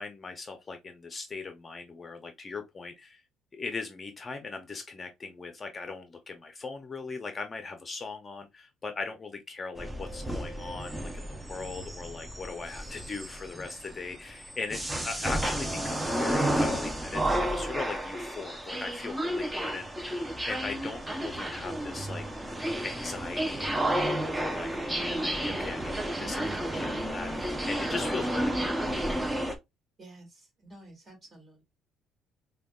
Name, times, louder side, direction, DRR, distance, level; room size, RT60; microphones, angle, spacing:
voice 1, 0.0-3.2 3.5-22.2 22.7-23.7 24.1-28.8, left 4 dB, 30° left, 0.6 m, -39 dB
sound 1, 9.8-29.5, right 1 dB, 10° right, 0.6 m, -32 dB
voice 2, 30.0-31.6, right 1 dB, 30° right, 1.9 m, -51 dB
4.9 x 2.3 x 2.3 m
cardioid pair, 100°, 0 cm